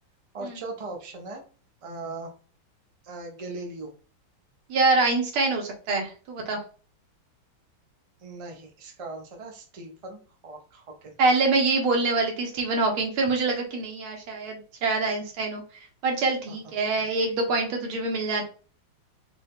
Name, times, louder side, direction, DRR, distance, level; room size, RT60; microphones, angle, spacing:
voice 1, 0.3-1.4 1.8-2.3 3.0-3.9 8.2-11.1, right 2 dB, 50° right, 2 dB, 0.4 m, -39 dB
voice 2, 4.7-6.6 11.2-15.6 16.0-18.4, right 3 dB, 80° right, 2 dB, 2.0 m, -25 dB
5.0 x 2.6 x 3.6 m, 0.37 s
omnidirectional pair, 2.3 m